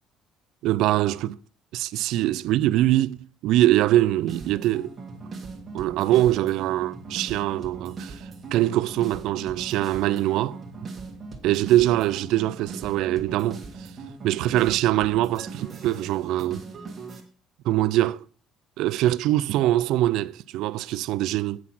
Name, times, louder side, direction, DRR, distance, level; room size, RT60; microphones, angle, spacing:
voice 1, 0.6-1.4 1.7-3.2 3.4-4.9 5.7-8.2 8.5-10.6 11.4-13.6 14.2-16.6 17.7-18.2 18.8-21.6, right 14 dB, 70° right, 0.4 m, -23 dB
sound 1, 4.3-17.2, right 3 dB, 25° right, 1.5 m, -40 dB
8.6 x 5.9 x 5.9 m
cardioid pair, 175°, 0 cm